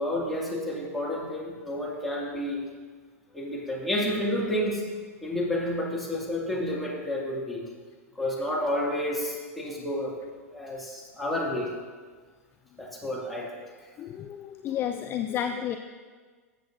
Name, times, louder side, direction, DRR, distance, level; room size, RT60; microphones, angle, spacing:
voice 1, 0.0-2.6 3.3-4.8 5.2-7.6 8.2-10.2 10.5-11.7 12.8-13.9, left 1 dB, ahead, -5 dB, 2.0 m, -30 dB
voice 2, 14.0-15.8, left 9 dB, 25° left, 8 dB, 0.4 m, -31 dB
13.5 x 7.8 x 2.5 m, 1.5 s
figure-of-eight pair, 100°, 8 cm